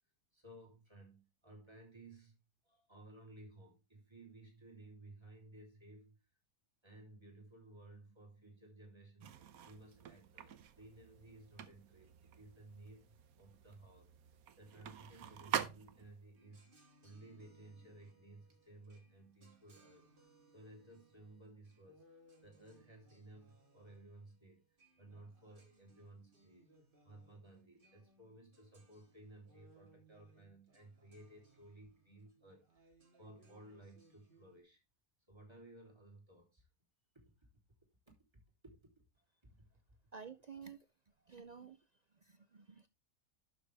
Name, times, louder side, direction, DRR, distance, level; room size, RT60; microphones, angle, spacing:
voice 1, 0.3-2.4 2.6-6.2 6.8-14.1 14.6-16.7 17.0-20.1 20.5-22.0 22.4-24.6 25.0-26.7 27.0-34.8 35.3-36.7 37.2-37.5 38.1-38.9 39.4-39.7, right 2 dB, 20° right, 3.5 m, -58 dB
sound 1, 9.2-16.3, right 9 dB, 85° right, 1.3 m, -46 dB
sound 2, 16.4-34.6, right 2 dB, 40° right, 2.1 m, -68 dB
voice 2, 40.1-40.8 41.3-41.8 42.2-42.9, right 6 dB, 65° right, 0.4 m, -51 dB
12.0 x 6.5 x 3.4 m
omnidirectional pair, 1.5 m